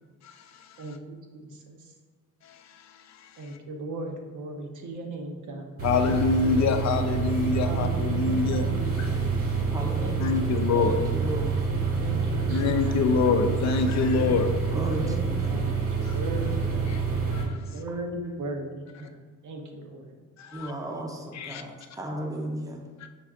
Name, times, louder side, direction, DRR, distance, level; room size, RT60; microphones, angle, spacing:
voice 1, 0.2-0.8 2.4-3.6 5.8-8.6 9.0-9.1 10.2-10.9 12.5-14.5 16.1-16.2 17.3-17.6 20.4-20.7 21.3-21.6 23.0-23.1, left 5 dB, 55° left, 0.5 m, -26 dB
voice 2, 0.8-1.9 3.4-5.7 5.9-6.7 7.6-9.2 10.0-10.7 12.0-13.1 14.1-17.0 17.7-19.1 19.4-20.1, right 1 dB, 65° right, 0.8 m, -37 dB
sound 1, 5.8-17.4, right 5 dB, 40° right, 1.0 m, -27 dB
voice 3, 9.7-11.6 12.3-12.5 12.8-12.9 14.7-15.8 17.3-17.8 20.5-22.8, right 1 dB, 10° right, 0.6 m, -36 dB
5.9 x 2.5 x 3.5 m
cardioid pair, 110°, 33 cm